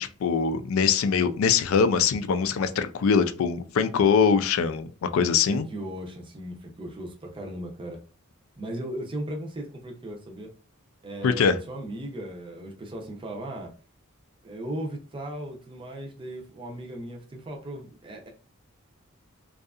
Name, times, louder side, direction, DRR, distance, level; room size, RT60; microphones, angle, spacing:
voice 1, 0.0-5.7 11.2-11.6, left 6 dB, 75° left, 10 dB, 0.3 m, -23 dB
voice 2, 5.4-8.0 8.6-10.5 11.0-13.7 14.4-18.3, right 1 dB, 25° right, 0 dB, 0.5 m, -37 dB
2.6 x 2.3 x 2.3 m, 0.37 s
head